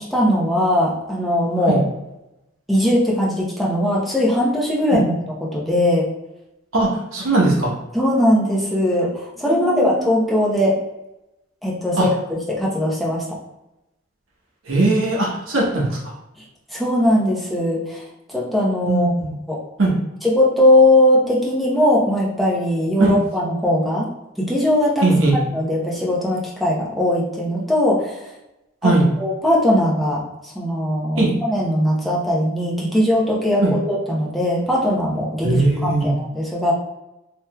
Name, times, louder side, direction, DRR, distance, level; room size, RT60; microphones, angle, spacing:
voice 1, 0.1-1.8 2.7-5.1 5.5-6.0 7.9-10.8 11.6-12.1 12.5-13.2 16.7-18.0 18.3-19.1 19.5-19.6 20.2-24.1 24.4-25.1 25.5-28.2 28.8-28.9 29.2-36.7, left 1 dB, ahead, -5 dB, 0.7 m, -19 dB
voice 2, 6.7-7.7 9.5-10.1 12.0-12.1 14.7-16.0 18.8-19.3 19.8-20.0 23.0-23.1 25.0-25.4 28.8-29.0 31.2-31.3 33.6-33.7 35.4-36.1, right 2 dB, 75° right, -3 dB, 1.0 m, -19 dB
3.5 x 2.9 x 2.2 m, 0.93 s
head